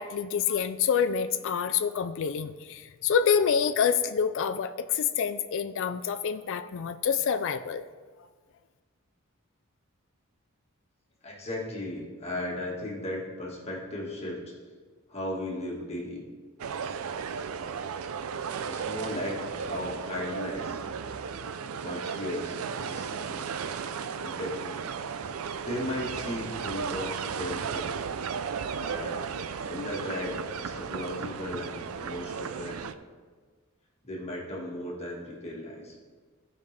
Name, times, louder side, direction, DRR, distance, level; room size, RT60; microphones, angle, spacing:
voice 1, 0.0-7.8, left 7 dB, 65° left, 8 dB, 0.4 m, -27 dB
voice 2, 11.2-14.5 15.1-16.2 18.7-20.8 21.8-23.4 24.1-24.8 25.6-28.0 28.8-29.2 29.6-32.8 34.0-36.0, left 1 dB, 30° left, -3 dB, 1.6 m, -36 dB
sound 1, 16.6-32.9, right 6 dB, 85° right, 0.4 m, -35 dB
15.5 x 5.3 x 3.3 m, 1.5 s
head